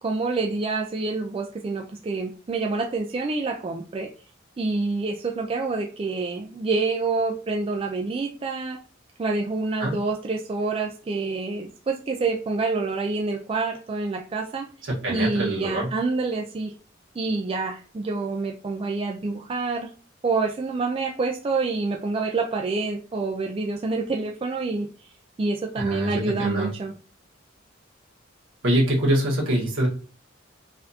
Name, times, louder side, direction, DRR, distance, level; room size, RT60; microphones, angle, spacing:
voice 1, 0.0-4.1 4.6-8.8 9.2-14.7 15.1-16.7 17.2-19.9 20.2-24.9 25.4-26.9, right 3 dB, 30° right, 2 dB, 0.3 m, -27 dB
voice 2, 14.8-15.9 25.8-26.7 28.6-29.9, right 1 dB, 80° right, -3 dB, 1.4 m, -24 dB
4.0 x 2.6 x 2.7 m, 0.38 s
head